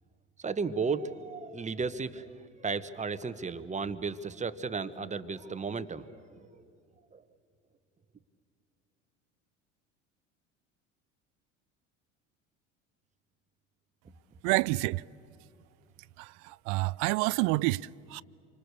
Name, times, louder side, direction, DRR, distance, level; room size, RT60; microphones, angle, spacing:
voice 1, 0.4-6.6 7.1-7.2, right 4 dB, 20° right, 1.3 m, -34 dB
voice 2, 14.4-15.0 16.2-18.2, right 22 dB, 55° right, 0.5 m, -29 dB
28.0 x 25.0 x 6.8 m
figure-of-eight pair, 70°, 38 cm